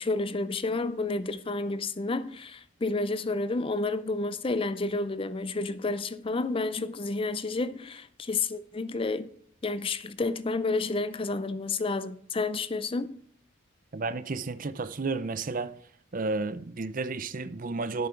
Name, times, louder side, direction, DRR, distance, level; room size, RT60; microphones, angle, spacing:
voice 1, 0.0-9.3 9.6-13.1, left 3 dB, 25° left, 0.5 m, -30 dB
voice 2, 13.9-15.8 16.1-18.1, right 3 dB, 40° right, 0.6 m, -32 dB
10.5 x 8.5 x 4.5 m
head